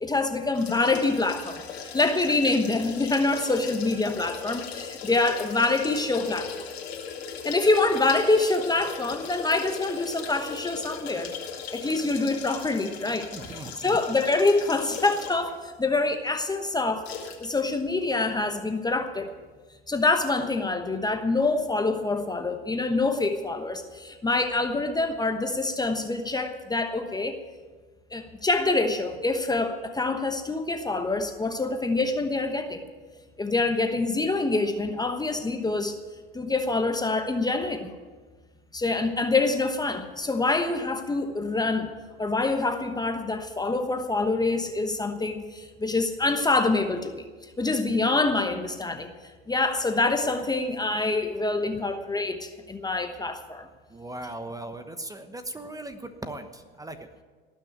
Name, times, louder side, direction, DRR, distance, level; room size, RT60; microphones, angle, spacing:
voice 1, 0.0-6.7 7.3-11.3 11.7-17.1 17.4-19.3 19.9-27.4 28.1-32.8 33.4-36.0 36.3-37.9 38.7-41.9 42.2-47.3 47.6-49.1 49.5-53.7, left 3 dB, 10° left, 6 dB, 1.1 m, -26 dB
sound 1, 0.5-15.5 15.9-16.0 17.0-17.5 17.8-17.9, left 6 dB, 85° left, 2.2 m, -38 dB
voice 2, 13.3-14.0 51.7-51.8 53.9-57.2, right 1 dB, 10° right, 9 dB, 1.1 m, -39 dB
19.0 x 6.4 x 9.3 m, 1.4 s
hypercardioid pair, 85°, 31 cm